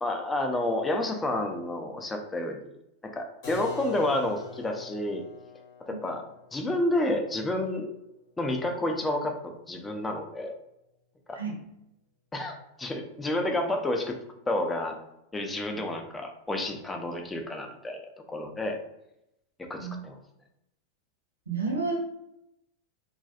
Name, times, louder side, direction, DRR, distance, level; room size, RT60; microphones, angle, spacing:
voice 1, 0.0-2.7 3.1-5.2 5.9-6.2 6.5-7.9 8.4-10.6 11.3-11.4 12.3-14.2 14.5-14.9 15.3-18.0 18.3-18.8 19.7-20.1, left 1 dB, 15° left, 3 dB, 0.4 m, -30 dB
Keyboard (musical), 3.4-9.0, left 5 dB, 45° left, 0.7 m, -45 dB
voice 2, 21.5-22.0, right 4 dB, 75° right, 0 dB, 0.6 m, -30 dB
2.3 x 2.2 x 2.5 m, 0.84 s
figure-of-eight pair, 90°, 0 cm